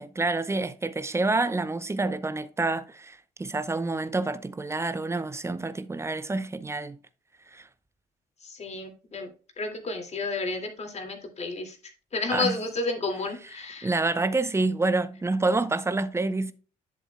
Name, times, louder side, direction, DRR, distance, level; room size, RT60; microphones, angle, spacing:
voice 1, 0.0-7.0 7.5-7.7 12.3-12.6 13.8-16.5, right 3 dB, 15° right, 0.7 m, -28 dB
voice 2, 8.4-9.3 9.6-11.8 12.1-13.9, left 3 dB, 35° left, 2.3 m, -31 dB
11.0 x 7.2 x 2.2 m
figure-of-eight pair, 45°, 19 cm